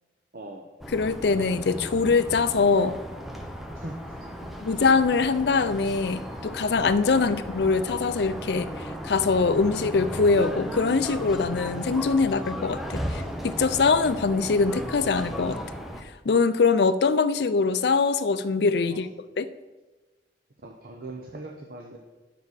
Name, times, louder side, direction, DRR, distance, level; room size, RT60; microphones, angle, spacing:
voice 1, 0.3-0.7 3.7-4.8 13.1-13.3 18.9-19.1 20.6-22.0, right 2 dB, 55° right, 1 dB, 0.8 m, -42 dB
sound 1, 0.8-16.0, equal, ahead, 0.8 m, -35 dB
voice 2, 0.9-3.0 4.6-15.6 16.0-19.1 19.4-19.5, left 4 dB, 70° left, 12 dB, 0.5 m, -23 dB
10.5 x 7.5 x 4.1 m, 1.2 s
head